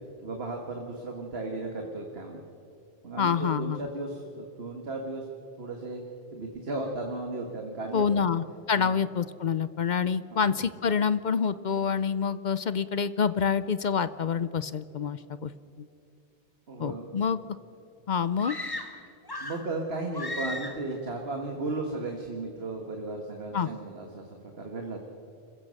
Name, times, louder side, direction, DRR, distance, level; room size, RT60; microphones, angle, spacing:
voice 1, 0.2-2.4 3.0-5.3 5.6-6.0 6.3-8.2 8.7-8.9 10.3-10.5 16.7-17.2 19.4-25.0, right 2 dB, 70° right, 2 dB, 1.9 m, -35 dB
voice 2, 3.2-3.8 7.9-15.5 15.8-15.9 16.8-17.4 18.1-18.6 23.5-23.7, left 6 dB, 55° left, 15 dB, 0.6 m, -27 dB
sound 1, 18.4-19.7 20.1-20.9, left 2 dB, 20° left, 1.2 m, -36 dB
27.0 x 15.5 x 6.4 m, 2.7 s
omnidirectional pair, 1.1 m